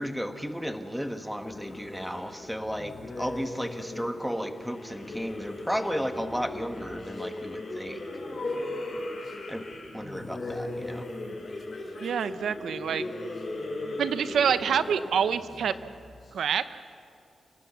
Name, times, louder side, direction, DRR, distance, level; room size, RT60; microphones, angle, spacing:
voice 1, 0.0-8.0 9.5-9.7 9.9-11.1, equal, ahead, 7 dB, 1.2 m, -33 dB
sound 1, 1.4-16.3, left 2 dB, 35° left, 5.0 m, -38 dB
voice 2, 12.0-13.0 14.0-15.7 16.3-16.8, right 7 dB, 90° right, 12 dB, 0.8 m, -26 dB
28.0 x 18.5 x 7.1 m, 2.4 s
wide cardioid pair, 175°, 0 cm